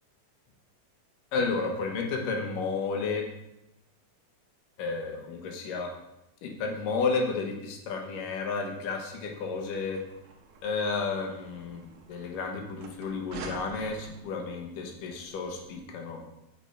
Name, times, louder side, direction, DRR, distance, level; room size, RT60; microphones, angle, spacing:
voice 1, 1.3-3.2 4.8-5.9 6.4-10.0 10.6-16.2, left 4 dB, 80° left, 2 dB, 2.8 m, -32 dB
sound 1, 9.1-15.7, right 4 dB, 65° right, 1.9 m, -48 dB
8.5 x 6.2 x 4.3 m, 0.86 s
omnidirectional pair, 3.8 m